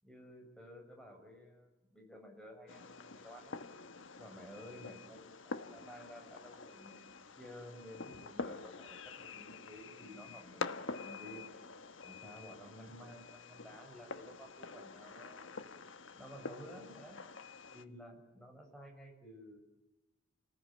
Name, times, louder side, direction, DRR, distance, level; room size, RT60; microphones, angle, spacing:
voice 1, 0.0-3.6 4.2-7.1 7.4-11.5 12.0-15.7 16.1-17.2 17.7-19.6, equal, 5° left, 1 dB, 7.0 m, -53 dB
Fireworks, 2.7-17.8, left 4 dB, 70° left, 1.3 m, -47 dB
29.5 x 20.0 x 9.1 m, 0.96 s
head